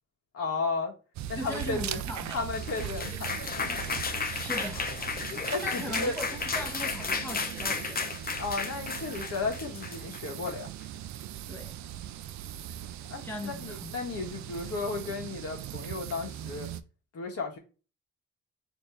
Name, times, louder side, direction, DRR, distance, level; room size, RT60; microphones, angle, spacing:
voice 1, 0.3-0.9 1.3-2.0 2.3-3.8 5.5-6.1 8.4-10.7 13.1-16.7 17.1-17.6, left 4 dB, 50° left, 1.5 m, -34 dB
sound 1, 1.1-16.8, right 11 dB, 65° right, 0.5 m, -39 dB
voice 2, 1.4-2.5 4.3-5.0 5.6-8.1 11.5-11.8 13.2-13.9, left 1 dB, 5° left, 1.2 m, -39 dB
sound 2, 2.3-10.6, left 5 dB, 30° left, 0.8 m, -34 dB
4.3 x 2.9 x 3.2 m
cardioid pair, 90°, 30 cm